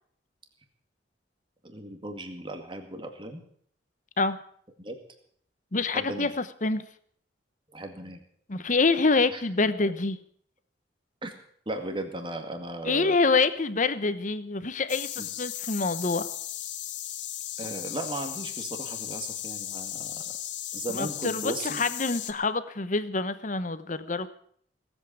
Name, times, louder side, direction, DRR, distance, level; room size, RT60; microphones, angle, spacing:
voice 1, 1.6-3.4 4.8-5.0 5.9-6.3 7.7-8.2 9.3-9.4 11.2-11.3 11.7-13.2 15.2-15.3 17.6-20.2 20.7-21.8, right 1 dB, 25° right, 5 dB, 2.0 m, -36 dB
voice 2, 5.7-6.8 8.5-10.2 12.8-16.3 20.9-24.3, left 3 dB, 40° left, 13 dB, 1.0 m, -26 dB
sound 1, 14.9-22.3, left 12 dB, 70° left, 1.3 m, -36 dB
18.0 x 8.3 x 8.8 m, 0.62 s
head